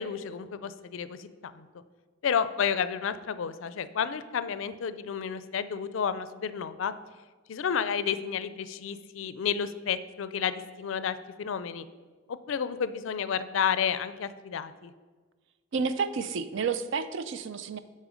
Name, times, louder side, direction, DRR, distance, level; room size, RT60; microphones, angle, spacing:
voice 1, 0.0-1.8 2.2-6.9 7.5-11.9 12.3-14.9, left 7 dB, 70° left, 14 dB, 0.4 m, -31 dB
voice 2, 15.7-17.8, right 5 dB, 60° right, 12 dB, 0.4 m, -30 dB
9.7 x 4.2 x 5.1 m, 1.4 s
head